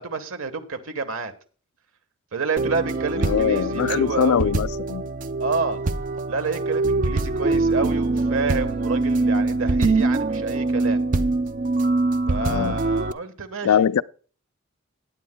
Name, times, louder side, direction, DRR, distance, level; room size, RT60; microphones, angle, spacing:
voice 1, 0.0-1.3 2.3-4.5 5.4-5.8 6.3-11.0 12.3-13.8, right 4 dB, 75° right, 1.2 m, -29 dB
sound 1, 2.6-13.1, right 3 dB, 35° right, 0.4 m, -23 dB
voice 2, 3.2-5.0 12.4-12.8 13.6-14.0, left 8 dB, 85° left, 0.4 m, -22 dB
17.5 x 9.3 x 2.2 m
head